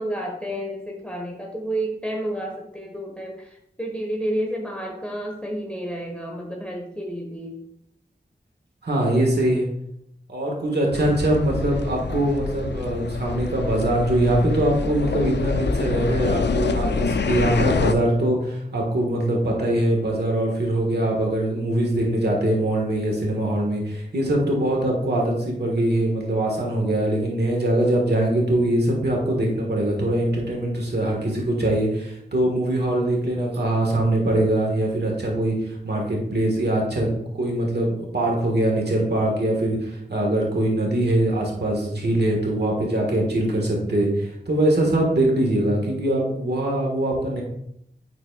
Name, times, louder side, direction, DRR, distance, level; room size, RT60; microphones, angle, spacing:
voice 1, 0.0-7.6, right 1 dB, 5° left, 0 dB, 1.2 m, -30 dB
voice 2, 8.8-9.7 10.3-37.1 37.3-47.4, right 1 dB, 70° right, -1 dB, 1.5 m, -22 dB
sound 1, 10.9-17.9, left 4 dB, 80° left, 0.4 m, -26 dB
9.7 x 4.2 x 2.3 m, 0.74 s
cardioid pair, 40°, 18 cm